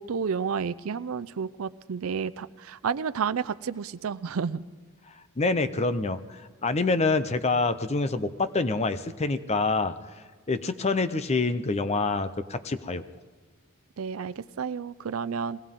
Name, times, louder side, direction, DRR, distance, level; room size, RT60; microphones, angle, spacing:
voice 1, 0.0-4.6 14.0-15.6, right 6 dB, 75° right, 14 dB, 0.5 m, -31 dB
voice 2, 5.4-9.9 10.5-13.0, left 3 dB, 30° left, 12 dB, 0.6 m, -26 dB
21.5 x 17.5 x 3.7 m, 1.4 s
head